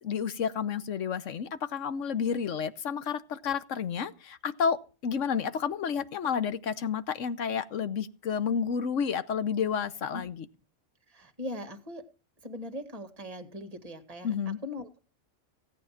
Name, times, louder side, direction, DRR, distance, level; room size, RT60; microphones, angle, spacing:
voice 1, 0.0-10.5 14.2-14.6, left 7 dB, 65° left, 1.2 m, -30 dB
voice 2, 11.1-12.0 12.4-14.3 14.6-15.0, left 1 dB, 25° right, 1.9 m, -40 dB
17.0 x 8.9 x 5.8 m
omnidirectional pair, 1.4 m